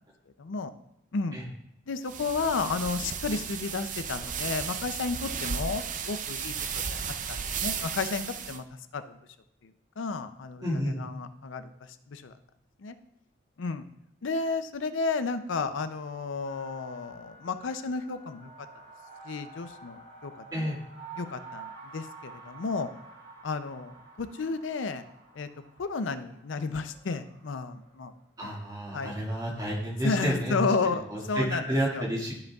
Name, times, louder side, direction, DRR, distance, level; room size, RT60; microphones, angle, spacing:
voice 1, 0.4-0.7 1.1-1.4 1.9-7.0 7.3-8.6 8.9-9.2 9.6-10.6 11.0-12.3 12.8-13.0 13.6-13.8 14.2-18.5 19.2-20.7 21.2-22.9 23.4-25.0 25.3-25.5 25.8-28.1 28.4-28.5 28.9-29.1 30.0-31.6 31.9-32.0, left 4 dB, 85° left, 11 dB, 0.5 m, -32 dB
sound 1, 2.1-8.6, right 6 dB, 45° right, 0.5 m, -34 dB
voice 2, 10.6-11.0 20.5-20.8 28.4-30.5 31.1-32.3, equal, 20° right, -4 dB, 1.9 m, -30 dB
sound 2, 16.5-28.1, right 3 dB, 85° right, 2.0 m, -49 dB
12.5 x 5.2 x 2.4 m, 0.77 s
head